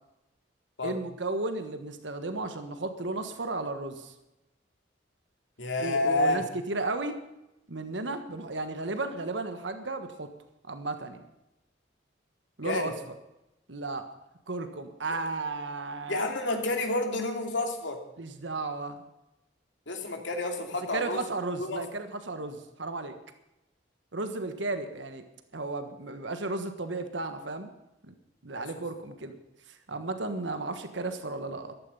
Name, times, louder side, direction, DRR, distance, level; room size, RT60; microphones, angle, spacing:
voice 1, 0.8-4.1 5.8-7.2 7.7-10.3 10.7-11.2 12.6-12.9 13.7-14.0 14.5-16.2 18.2-19.0 20.9-23.1 24.1-25.2 25.5-27.7 28.1-28.2 28.4-29.4 29.9-31.7, right 3 dB, 80° right, 8 dB, 1.5 m, -34 dB
voice 2, 5.6-6.4 12.6-12.9 16.1-18.0 19.9-21.3 21.6-21.8 28.6-28.7, left 2 dB, 80° left, 4 dB, 2.8 m, -29 dB
14.5 x 12.5 x 5.6 m, 0.92 s
head